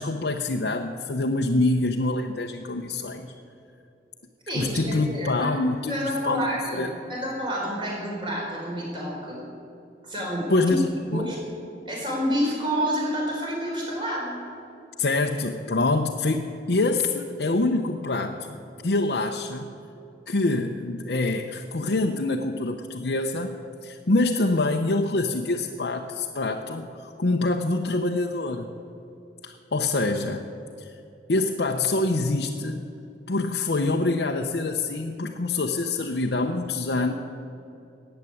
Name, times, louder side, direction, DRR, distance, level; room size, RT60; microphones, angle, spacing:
voice 1, 0.0-3.3 4.5-6.0 6.2-6.5 6.7-6.9 10.5-11.3 15.0-18.6 18.8-19.7 20.3-28.7 29.4-30.5 30.8-30.9 31.3-32.8 33.3-37.1, left 2 dB, 70° left, 2 dB, 0.8 m, -25 dB
voice 2, 4.5-5.5 5.9-9.4 10.0-10.4 11.1-11.4 11.8-14.4, equal, 30° right, -3 dB, 4.8 m, -29 dB
15.0 x 9.0 x 9.8 m, 2.7 s
head